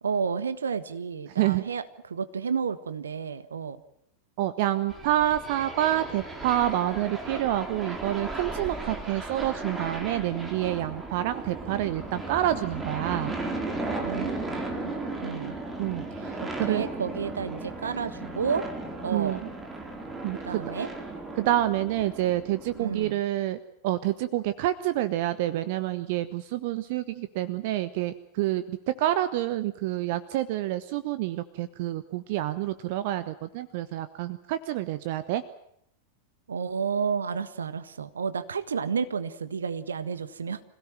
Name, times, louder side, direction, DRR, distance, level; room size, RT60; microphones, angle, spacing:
voice 1, 0.0-3.8 14.0-14.4 14.8-15.6 16.7-18.7 19.0-19.4 20.3-20.9 22.7-23.2 36.5-40.6, right 6 dB, 70° right, 13 dB, 1.4 m, -31 dB
voice 2, 4.4-13.3 15.8-16.9 19.1-19.5 20.2-20.6 21.4-23.6 23.8-35.4, right 13 dB, 50° right, 14 dB, 1.0 m, -28 dB
sound 1, 4.9-23.1, right 2 dB, 10° right, 4.1 m, -36 dB
26.0 x 17.0 x 9.1 m, 0.74 s
figure-of-eight pair, 90°, 0 cm